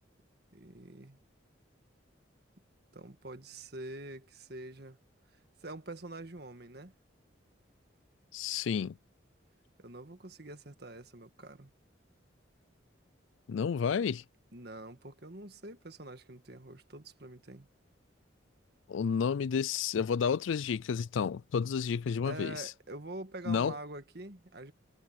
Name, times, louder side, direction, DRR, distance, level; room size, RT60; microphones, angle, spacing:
voice 1, 0.5-1.2 2.9-5.0 5.3-6.9 9.8-11.7 14.5-17.7 22.2-24.7, right 2 dB, 55° right, 1.7 m, -45 dB
voice 2, 8.3-9.0 13.5-14.2 18.9-22.5 23.5-23.7, left 6 dB, 80° left, 0.4 m, -31 dB
head